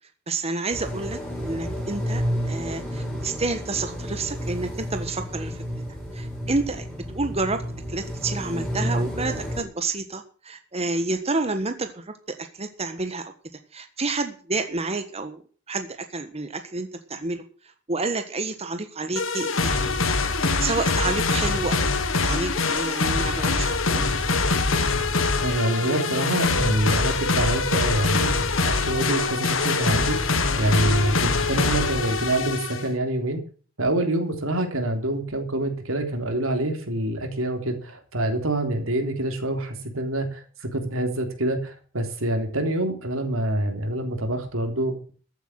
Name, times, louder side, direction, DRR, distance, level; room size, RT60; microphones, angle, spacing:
voice 1, 0.3-1.2 1.5-5.6 6.1-6.9 7.1-7.6 7.9-13.3 13.7-15.4 15.7-17.4 17.9-20.0 20.4-24.0, right 3 dB, 30° right, 7 dB, 1.3 m, -29 dB
sound 1, 0.7-9.6, equal, 5° left, 8.0 m, -31 dB
sound 2, 19.2-32.9, left 3 dB, 70° left, 1.8 m, -24 dB
voice 2, 25.4-30.2 30.6-33.4 33.8-45.1, right 1 dB, 85° right, 5 dB, 3.5 m, -26 dB
14.5 x 8.3 x 7.5 m, 0.42 s
head